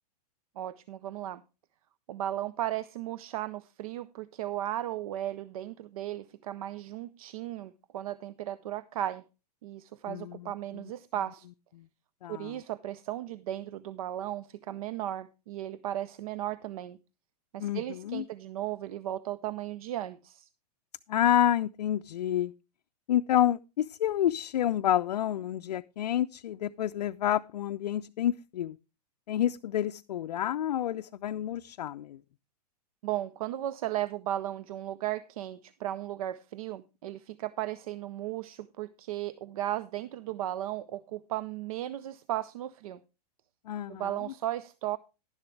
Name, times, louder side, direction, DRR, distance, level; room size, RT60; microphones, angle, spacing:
voice 1, 0.6-1.4 2.1-9.2 9.6-11.5 12.3-17.0 17.5-20.5 33.0-43.0 43.9-45.0, right 13 dB, 60° right, 0.6 m, -35 dB
voice 2, 10.1-10.9 12.2-12.6 17.6-18.2 21.1-22.5 23.1-28.8 29.3-32.2 43.7-44.1, left 11 dB, 75° left, 0.4 m, -29 dB
11.5 x 10.5 x 3.2 m
hypercardioid pair, 110°, 21 cm